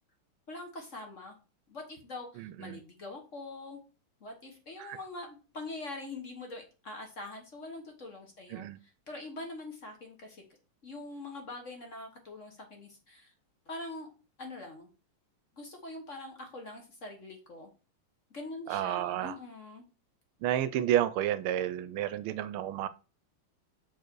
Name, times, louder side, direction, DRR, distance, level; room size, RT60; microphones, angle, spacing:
voice 1, 0.5-1.4 1.7-3.8 4.2-8.7 9.1-10.4 10.8-13.3 13.7-14.1 14.4-14.9 15.6-17.7 18.3-19.8, left 2 dB, 40° left, 1.4 m, -43 dB
voice 2, 2.4-2.8 4.8-5.0 8.5-8.8 18.7-19.4 20.4-22.9, right 11 dB, 80° right, 1.4 m, -31 dB
6.7 x 4.7 x 4.6 m
omnidirectional pair, 2.4 m